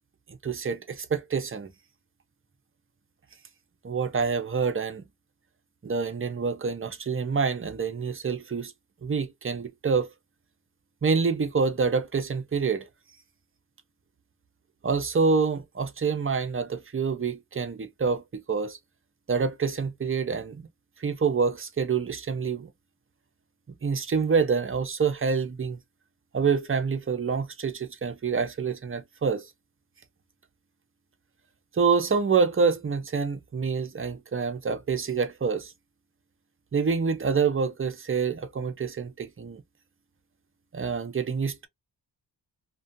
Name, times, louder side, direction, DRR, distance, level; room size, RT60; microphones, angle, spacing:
voice 1, 0.4-1.7 3.8-5.0 5.8-8.7 9.0-10.1 11.0-12.9 14.8-18.8 19.3-20.6 21.0-22.7 23.8-25.8 26.3-29.5 31.7-35.7 36.7-39.6 40.7-41.7, right 5 dB, 30° right, 0.5 m, -27 dB
2.3 x 2.2 x 2.5 m
wide cardioid pair, 95°, 44 cm